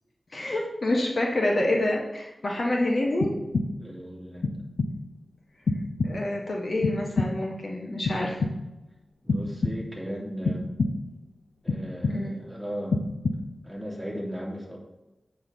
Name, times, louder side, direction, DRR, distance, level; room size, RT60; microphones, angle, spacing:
voice 1, 0.3-3.3 6.0-8.4 12.1-12.4, left 1 dB, 60° left, -1 dB, 1.4 m, -27 dB
sound 1, 3.2-4.0 4.4-5.2 5.7-6.5 6.8-7.6 8.0-8.9 9.3-10.1 10.4-11.2 11.7-12.5 12.9-13.7, left 3 dB, 85° left, 0.6 m, -29 dB
voice 2, 3.8-4.4 9.2-10.7 11.6-13.0 13.6-14.8, equal, ahead, -4 dB, 2.8 m, -36 dB
8.6 x 4.1 x 6.9 m, 1.0 s
wide cardioid pair, 75°, 0 cm